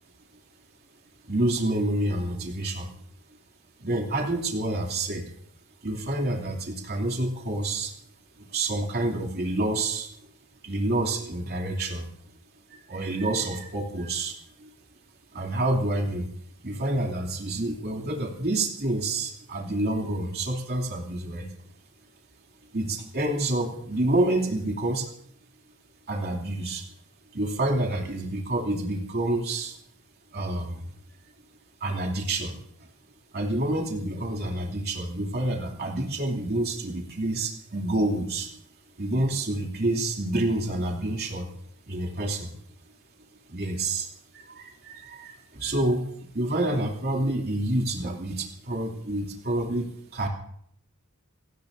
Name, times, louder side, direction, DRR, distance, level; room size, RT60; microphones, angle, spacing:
voice 1, 1.2-2.9 3.8-5.2 5.8-7.9 8.5-10.1 10.6-12.1 12.7-14.7 15.3-16.3 16.6-21.5 22.7-25.1 26.1-26.9 27.3-29.8 30.3-30.9 31.8-32.9 33.3-38.5 39.0-41.5 41.9-42.5 43.5-46.0 46.3-50.3, right 1 dB, 50° right, 1 dB, 2.8 m, -28 dB
29.0 x 16.5 x 2.7 m, 0.68 s
head